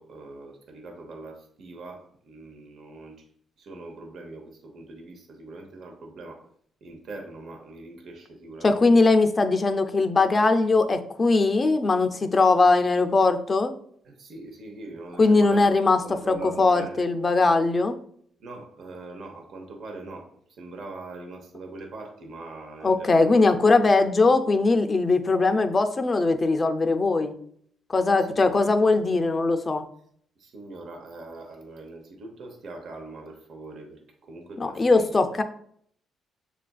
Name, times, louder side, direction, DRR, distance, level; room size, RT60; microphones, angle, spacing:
voice 1, 0.0-3.2 3.6-6.5 6.8-8.8 14.1-15.8 16.0-17.0 18.4-20.3 20.6-23.5 28.0-28.7 30.4-35.4, right 2 dB, 60° right, 3 dB, 0.7 m, -42 dB
voice 2, 8.6-13.7 15.2-18.0 22.8-27.3 27.9-29.8 34.6-35.4, left 3 dB, 30° left, 7 dB, 0.4 m, -20 dB
6.8 x 2.5 x 2.3 m, 0.64 s
cardioid pair, 90°, 0 cm